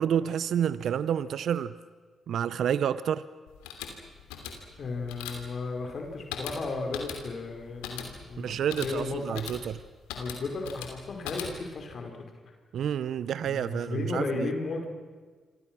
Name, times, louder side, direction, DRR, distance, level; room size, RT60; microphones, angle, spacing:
voice 1, 0.0-1.7 2.3-3.2 8.4-9.8 12.7-14.5, right 9 dB, 70° right, 16 dB, 0.7 m, -29 dB
sound 1, 3.5-11.8, left 7 dB, 90° left, 3.0 m, -41 dB
voice 2, 4.8-9.4 10.1-12.1 13.5-14.9, left 3 dB, 60° left, 3 dB, 4.7 m, -34 dB
28.0 x 25.0 x 6.1 m, 1.5 s
hypercardioid pair, 45°, 0 cm